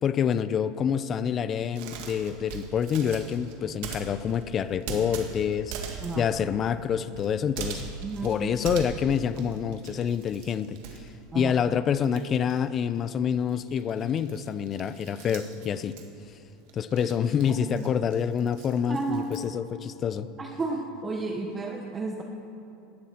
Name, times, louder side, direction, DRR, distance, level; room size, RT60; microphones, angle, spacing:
voice 1, 0.0-7.8 8.2-10.8 11.3-15.9 16.7-20.3, left 8 dB, 25° left, 14 dB, 0.4 m, -27 dB
sound 1, 1.7-11.7 12.0-19.5, right 6 dB, 60° right, 1.9 m, -41 dB
voice 2, 6.0-6.3 8.0-8.4 11.3-11.5 17.0-17.1 17.5-17.8 18.9-19.3 20.4-22.2, right 3 dB, 15° right, 2 dB, 0.9 m, -32 dB
17.0 x 12.0 x 4.4 m, 2.6 s
supercardioid pair, 155°, 0 cm